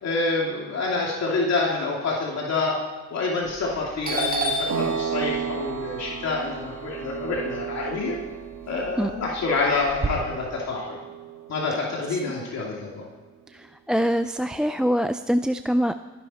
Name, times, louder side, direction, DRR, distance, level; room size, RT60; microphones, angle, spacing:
voice 1, 0.0-2.8 3.1-8.2 8.7-11.0 11.5-13.0, left 3 dB, 60° left, -2 dB, 2.8 m, -27 dB
Doorbell, 3.5-3.8 4.0-8.2 8.6-10.1, right 1 dB, 30° right, 2.4 m, -30 dB
sound 1, 4.7-13.0, right 9 dB, 90° right, 1.7 m, -35 dB
voice 2, 13.5-15.9, equal, 5° right, 10 dB, 0.4 m, -24 dB
21.5 x 10.5 x 4.3 m, 1.3 s
cardioid pair, 90°, 30 cm